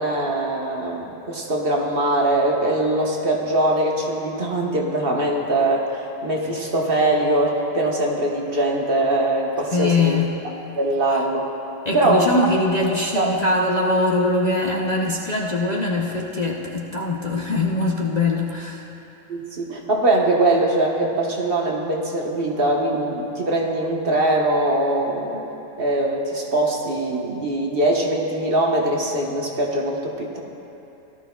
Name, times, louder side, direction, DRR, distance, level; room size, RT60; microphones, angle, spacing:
voice 1, 0.0-10.2 10.7-11.5 11.9-12.4 13.1-13.3 19.3-25.4 25.8-30.4, right 1 dB, 45° right, -1 dB, 1.3 m, -22 dB
voice 2, 9.7-10.3 11.8-18.9, left 2 dB, 40° left, -2 dB, 0.7 m, -22 dB
18.0 x 13.0 x 2.3 m, 2.9 s
omnidirectional pair, 1.3 m